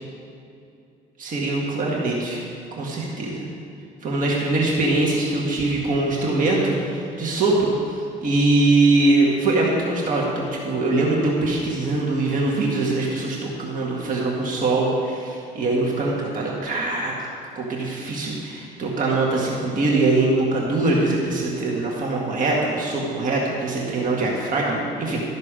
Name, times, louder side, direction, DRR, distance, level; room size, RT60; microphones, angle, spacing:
voice 1, 1.2-2.4 2.7-3.5 4.0-7.7 8.2-17.1 17.6-25.2, right 2 dB, 50° right, -3 dB, 1.9 m, -22 dB
13.0 x 6.5 x 5.2 m, 2.6 s
cardioid pair, 110°, 17 cm